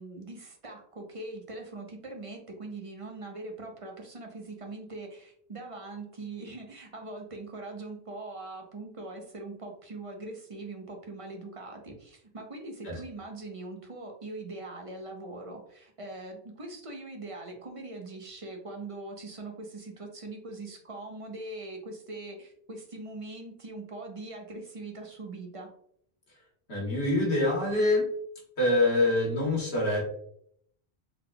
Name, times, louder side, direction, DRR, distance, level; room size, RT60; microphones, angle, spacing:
voice 1, 0.0-25.7, right 2 dB, 40° right, 2 dB, 0.7 m, -42 dB
voice 2, 26.7-28.0 28.6-30.0, left 2 dB, 85° left, -2 dB, 1.5 m, -25 dB
3.9 x 3.5 x 2.2 m, 0.66 s
omnidirectional pair, 1.0 m